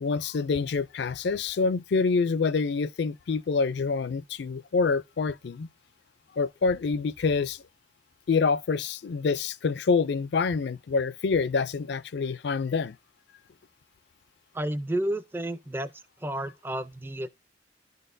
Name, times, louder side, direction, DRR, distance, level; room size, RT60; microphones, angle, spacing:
voice 1, 0.0-5.7 6.3-7.6 8.3-13.0, left 4 dB, 60° left, 0.4 m, -26 dB
voice 2, 14.5-17.3, right 1 dB, 10° right, 0.4 m, -31 dB
12.0 x 4.0 x 2.6 m
head